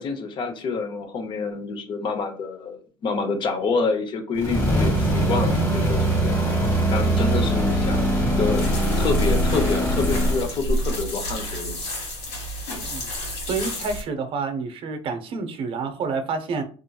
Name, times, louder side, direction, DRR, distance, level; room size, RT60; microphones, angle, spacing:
voice 1, 0.0-8.1 8.4-11.8, left 4 dB, 45° left, 7 dB, 0.6 m, -28 dB
sound 1, 4.3-10.4, right 1 dB, 15° left, 1.1 m, -22 dB
sound 2, 8.5-14.0, equal, 90° left, 1.4 m, -30 dB
voice 2, 13.4-16.6, right 4 dB, 50° right, 8 dB, 0.6 m, -28 dB
2.8 x 2.5 x 2.2 m, 0.39 s
cardioid pair, 120°, 12 cm